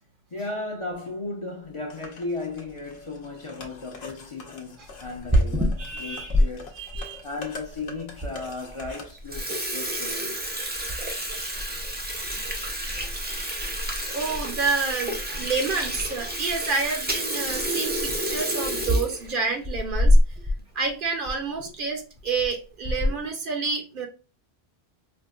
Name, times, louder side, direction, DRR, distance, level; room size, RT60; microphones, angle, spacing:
voice 1, 0.3-6.7 7.2-10.3 18.0-18.1 21.7-21.8 23.0-23.2, left 3 dB, 40° left, 0.6 m, -35 dB
sound 1, 1.9-9.1, left 4 dB, 85° left, 0.9 m, -44 dB
Water tap faucet / Sink (filling or washing), 5.0-6.5 6.9-7.0 7.7-7.8 8.2-8.3 8.7-8.9 9.2-20.6 20.9-21.0 21.3-21.4 22.2-22.5 22.8-23.3, equal, 15° right, 0.3 m, -26 dB
voice 2, 5.8-6.3 6.8-7.2 14.1-20.2 20.7-24.1, right 4 dB, 60° right, 0.8 m, -29 dB
4.3 x 2.4 x 2.3 m
omnidirectional pair, 1.0 m